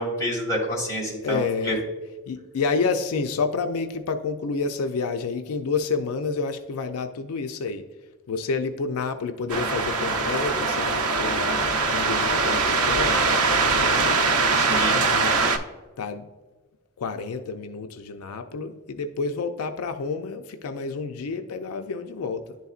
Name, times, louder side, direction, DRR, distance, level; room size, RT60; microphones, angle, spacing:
voice 1, 0.0-1.8 14.5-15.0, equal, 15° left, -4 dB, 1.9 m, -28 dB
voice 2, 1.2-1.8 2.3-7.8 8.3-14.2 14.9-15.4 16.0-16.2 17.0-22.6, left 4 dB, 80° left, 7 dB, 0.4 m, -29 dB
sound 1, 9.5-15.6, right 3 dB, 80° right, 0.7 m, -22 dB
10.5 x 4.0 x 2.4 m, 1.3 s
head